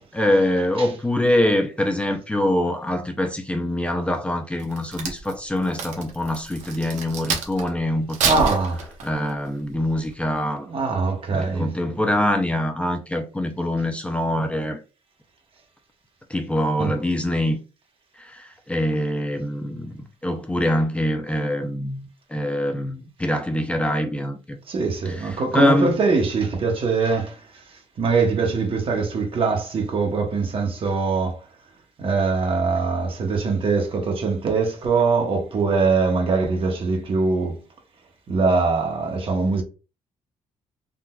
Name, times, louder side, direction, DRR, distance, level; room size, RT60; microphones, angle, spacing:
voice 1, 0.1-8.5 9.0-10.7 11.3-14.8 16.3-17.6 18.2-24.6 25.0-26.0, left 1 dB, 10° left, 0.5 m, -24 dB
Crack, 4.6-7.7 8.1-9.3 9.8-10.1, right 5 dB, 90° right, 0.8 m, -27 dB
voice 2, 8.3-8.8 10.7-11.7 16.8-16.9 24.7-31.4 32.0-37.6 38.3-39.6, right 4 dB, 45° right, 1.1 m, -22 dB
3.7 x 2.8 x 2.2 m
cardioid pair, 120°, 12 cm